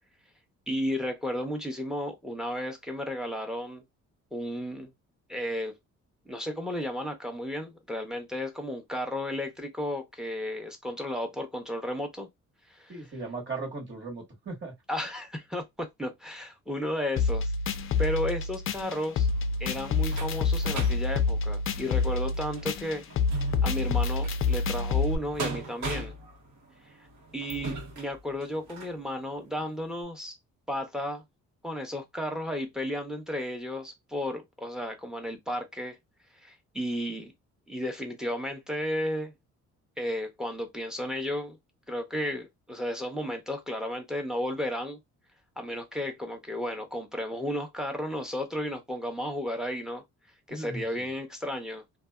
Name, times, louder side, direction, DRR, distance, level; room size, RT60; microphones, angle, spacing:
voice 1, 0.7-3.8 4.3-4.9 5.3-5.7 6.2-12.3 12.7-12.9 14.9-17.5 18.0-19.3 19.6-23.0 23.6-26.1 26.9-27.1 27.3-30.4 30.7-31.2 31.6-36.0 36.4-37.3 37.7-39.3 40.0-41.6 41.9-45.0 45.6-50.0 50.5-51.8, left 1 dB, ahead, 0.8 m, -33 dB
voice 2, 12.9-14.7 50.5-51.1, right 3 dB, 40° right, 1.4 m, -37 dB
sound 1, 17.2-25.2, left 4 dB, 45° left, 0.4 m, -27 dB
sound 2, 19.2-29.0 29.6-29.7 30.0-30.1, right 2 dB, 70° right, 1.1 m, -40 dB
2.5 x 2.3 x 2.2 m
cardioid pair, 90°, 30 cm